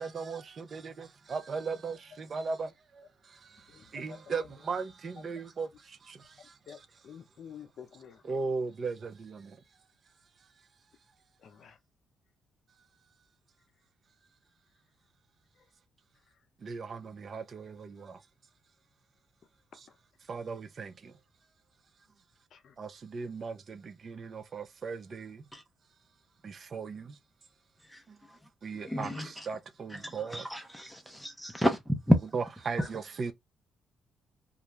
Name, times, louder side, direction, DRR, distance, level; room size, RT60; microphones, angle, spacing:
voice 1, 0.0-2.7 3.9-5.7 6.1-6.2 8.3-9.5 16.6-18.2 20.3-20.9 22.8-25.4 26.4-27.1 28.6-30.5 32.3-33.3, right 4 dB, 45° right, 0.6 m, -37 dB
voice 2, 3.7-4.5 6.4-8.2 11.4-11.8 15.5-15.7 16.3-16.4 19.7-20.0 22.5-22.8, left 7 dB, 60° left, 0.6 m, -50 dB
voice 3, 28.9-29.5 29.9-32.2 32.8-32.9, equal, ahead, 0.6 m, -29 dB
2.4 x 2.2 x 3.0 m
cardioid pair, 90°, 0 cm